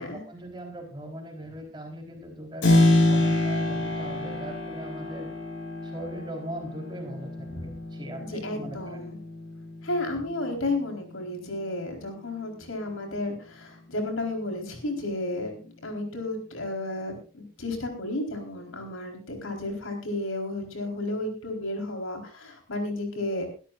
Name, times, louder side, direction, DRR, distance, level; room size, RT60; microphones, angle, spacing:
voice 1, 0.0-5.3 5.8-9.0, right 1 dB, 20° right, 1 dB, 4.2 m, -40 dB
Keyboard (musical), 2.6-11.2, left 1 dB, 60° left, 6.4 m, -27 dB
voice 2, 8.2-9.2 9.8-23.5, left 2 dB, 85° left, 3 dB, 4.4 m, -32 dB
22.5 x 12.5 x 2.6 m, 0.36 s
head